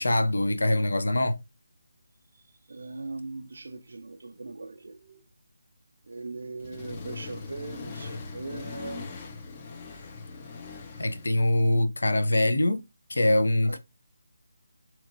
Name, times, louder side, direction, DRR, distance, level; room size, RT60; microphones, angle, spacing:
voice 1, 0.0-1.4 11.0-12.8 13.1-13.8, left 1 dB, 80° left, 0.5 m, -23 dB
voice 2, 2.7-5.2 6.1-9.1 13.7-13.8, right 3 dB, 70° right, 0.4 m, -40 dB
Accelerating revving vroom, 6.6-11.8, left 4 dB, 25° left, 0.5 m, -41 dB
3.0 x 2.8 x 2.4 m
figure-of-eight pair, 160°, 0 cm